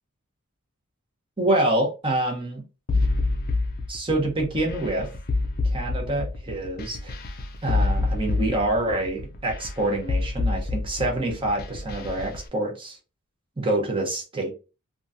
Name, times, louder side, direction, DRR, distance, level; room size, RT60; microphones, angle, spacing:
voice 1, 1.4-2.6 3.9-5.1 5.6-7.1 7.6-13.0 13.6-14.5, right 1 dB, 25° right, 0 dB, 0.9 m, -26 dB
sound 1, 2.9-12.4, left 3 dB, 45° left, 0.5 m, -27 dB
2.9 x 2.4 x 2.5 m, 0.30 s
head